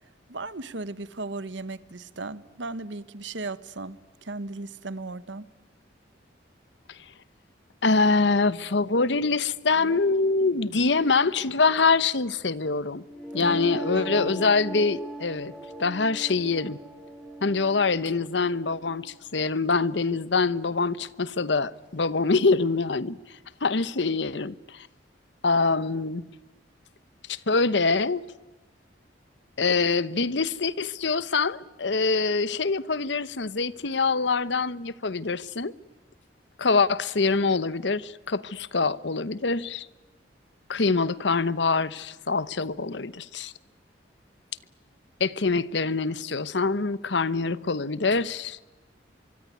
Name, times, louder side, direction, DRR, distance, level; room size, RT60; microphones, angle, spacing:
voice 1, 0.3-5.5 13.4-13.6 13.9-14.5, right 3 dB, 80° right, 1.3 m, -36 dB
voice 2, 7.8-13.0 13.3-15.5 15.8-16.8 17.4-23.2 23.6-24.9 25.4-26.2 27.3-28.2 29.6-35.7 36.6-39.9 40.7-43.5 45.2-48.6, left 4 dB, 75° left, 1.0 m, -24 dB
sound 1, 13.1-19.0, right 1 dB, ahead, 7.6 m, -38 dB
24.5 x 24.5 x 9.5 m
head